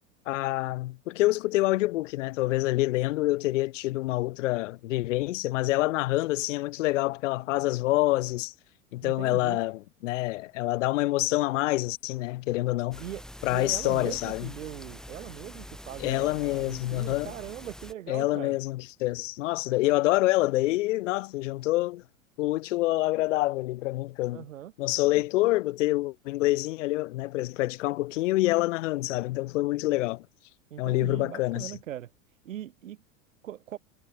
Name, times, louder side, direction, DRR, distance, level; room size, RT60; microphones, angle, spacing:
voice 1, 0.3-8.5 8.9-13.0 13.4-14.5 16.0-17.3 18.1-22.0 22.4-24.4 24.8-30.3 30.8-31.7, left 18 dB, 70° left, 0.5 m, -27 dB
voice 2, 9.0-9.6 13.0-13.2 13.5-18.6 24.3-24.7 25.1-25.2 30.7-32.1 32.4-33.0 33.4-33.8, right 12 dB, 75° right, 1.4 m, -40 dB
sound 1, 12.9-17.9, equal, ahead, 2.9 m, -45 dB
hypercardioid pair, 90°, 39 cm